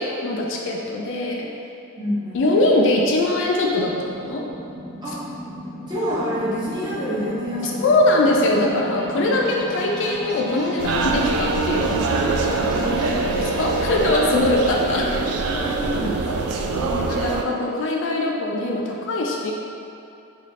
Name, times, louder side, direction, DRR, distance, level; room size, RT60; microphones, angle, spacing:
voice 1, 0.0-1.5 2.3-4.5 7.6-12.2 12.6-12.9 13.6-15.1 16.7-19.5, left 2 dB, 55° left, -1 dB, 0.4 m, -22 dB
voice 2, 2.0-2.8 5.0-5.2 5.9-7.9 9.1-9.3 12.8-13.2 15.0-16.9, equal, 20° right, -9 dB, 0.6 m, -28 dB
sound 1, 2.3-16.6, left 1 dB, 20° left, 0.6 m, -35 dB
sound 2, 10.8-17.4, right 3 dB, 85° right, 0.3 m, -24 dB
4.0 x 2.4 x 3.1 m, 2.7 s
head